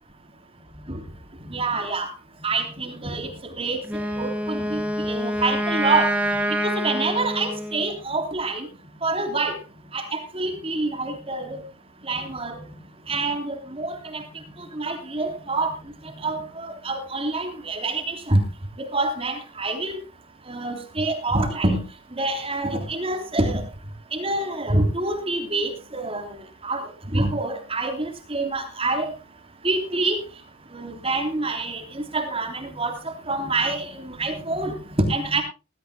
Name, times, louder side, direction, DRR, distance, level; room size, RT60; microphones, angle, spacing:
voice 1, 1.5-2.1 2.4-3.3 3.6-3.8 4.1-6.1 6.6-8.7 9.0-9.5 9.9-11.6 12.1-12.6 13.1-14.2 14.8-15.7 16.2-18.4 18.8-19.9 20.5-21.8 22.1-23.6 24.1-26.2 26.6-26.8 27.1-29.1 29.6-30.2 30.7-31.8 32.1-33.0 33.3-35.4, right 2 dB, 25° right, 5 dB, 3.3 m, -26 dB
Wind instrument woodwind instrument, 3.8-8.0, equal, 5° right, 2.1 m, -26 dB
21.0 x 13.5 x 2.3 m, 0.31 s
head